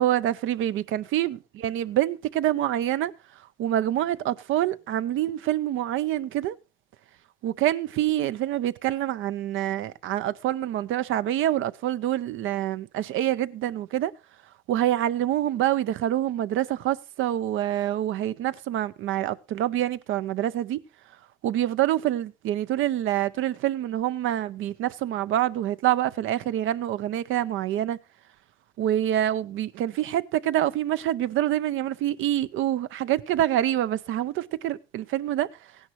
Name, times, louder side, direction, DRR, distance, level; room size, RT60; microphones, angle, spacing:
voice 1, 0.0-1.4 1.6-3.1 3.6-6.6 7.4-14.1 14.7-20.8 21.4-28.0 28.8-35.5, right 12 dB, 85° right, 0.6 m, -26 dB
15.5 x 10.5 x 3.1 m
cardioid pair, 90°, 20 cm